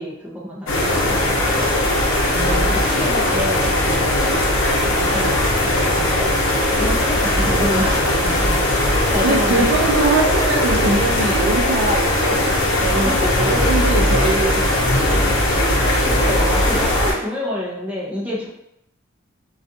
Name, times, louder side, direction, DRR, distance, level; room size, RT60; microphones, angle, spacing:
voice 1, 0.0-1.8 2.7-4.2 4.7-6.3 6.7-9.8 13.0-13.4 16.0-18.5, left 1 dB, 10° right, -6 dB, 0.6 m, -28 dB
sound 1, 0.7-17.1, left 1 dB, 70° left, 0.7 m, -19 dB
voice 2, 2.3-2.9 7.2-7.8 9.2-12.4 12.8-15.2, right 2 dB, 60° right, 0 dB, 0.4 m, -23 dB
2.5 x 2.3 x 2.6 m, 0.78 s
head